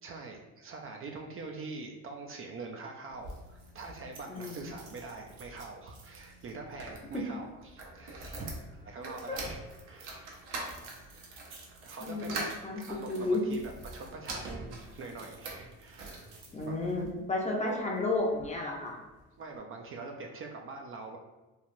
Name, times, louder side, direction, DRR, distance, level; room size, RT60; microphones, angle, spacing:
voice 1, 0.0-9.6 9.9-10.4 11.1-11.2 11.8-12.5 12.7-16.1 16.6-16.7 19.4-21.2, right 3 dB, 40° right, 2 dB, 0.4 m, -44 dB
sound 1, 3.1-17.1 17.7-18.5 18.9-19.0 19.2-19.3, right 2 dB, 75° right, 0.8 m, -45 dB
voice 2, 4.3-4.7 7.1-7.3 9.3-9.4 12.0-13.4 16.5-19.0, left 2 dB, 20° left, -1 dB, 0.6 m, -32 dB
3.2 x 2.3 x 2.6 m, 1.1 s
supercardioid pair, 80°, 32 cm